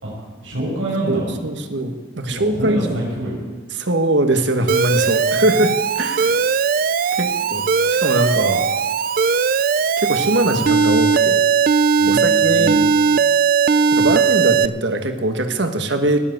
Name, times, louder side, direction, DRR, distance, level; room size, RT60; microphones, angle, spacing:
voice 1, 0.0-1.3 2.5-3.4 12.0-12.7, right 1 dB, 90° right, -3 dB, 5.8 m, -26 dB
voice 2, 1.1-3.1 3.7-6.3 7.1-8.7 10.0-11.4 12.1-12.8 13.9-16.2, right 1 dB, 65° right, 7 dB, 1.4 m, -21 dB
Alarm, 4.7-14.7, right 5 dB, 45° right, 0.4 m, -18 dB
18.5 x 7.6 x 8.0 m, 1.4 s
head